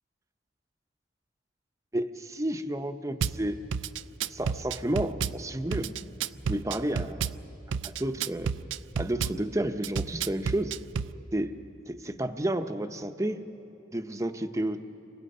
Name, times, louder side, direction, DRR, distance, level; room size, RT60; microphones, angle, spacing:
voice 1, 1.9-3.6 4.3-6.0 6.5-7.3 7.8-8.5 9.0-10.7 11.3-11.5 11.9-13.4 13.9-14.8, right 1 dB, 15° right, 8 dB, 0.7 m, -31 dB
Drum kit / Bass drum, 3.2-3.4 3.7-5.4 5.7-7.4 7.7-9.4 9.8-11.1, right 6 dB, 85° right, 0.5 m, -30 dB
29.0 x 24.5 x 5.5 m, 3.0 s
head